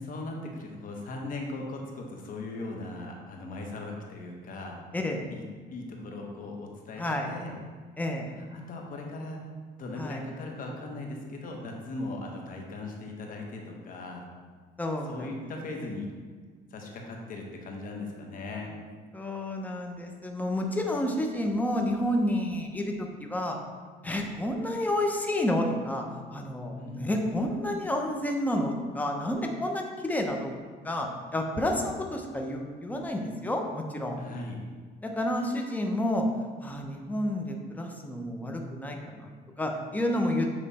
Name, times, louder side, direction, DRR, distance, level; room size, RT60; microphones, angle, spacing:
voice 1, 0.0-4.8 5.3-5.4 5.7-7.5 8.5-9.4 9.8-14.3 15.1-16.1 16.7-18.7 26.8-27.1 34.2-34.6, left 2 dB, 55° left, 1 dB, 1.1 m, -38 dB
voice 2, 7.0-7.3 8.0-8.3 10.0-10.2 14.8-15.4 19.1-23.6 24.0-26.0 26.3-30.5 30.8-34.2 35.0-36.3 36.6-39.3 39.6-40.5, left 1 dB, 10° left, 2 dB, 0.8 m, -30 dB
7.4 x 3.2 x 4.2 m, 1.5 s
cardioid pair, 110°, 17 cm